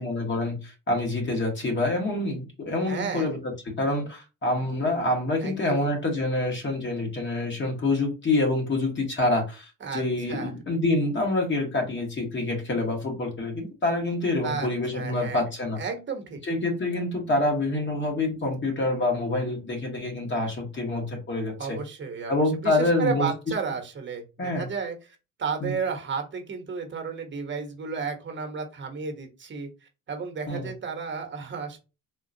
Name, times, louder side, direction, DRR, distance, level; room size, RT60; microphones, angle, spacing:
voice 1, 0.0-15.8 16.4-21.8 22.3-23.3 24.4-24.7 25.6-25.7 30.5-30.7, left 2 dB, 35° left, 1 dB, 1.2 m, -27 dB
voice 2, 2.9-3.3 5.4-5.9 9.8-10.0 10.3-10.5 14.4-15.4 15.8-16.4 21.6-29.7 30.1-31.8, right 5 dB, 35° right, 4 dB, 1.0 m, -33 dB
3.7 x 2.3 x 2.7 m, 0.30 s
supercardioid pair, 90°, 34 cm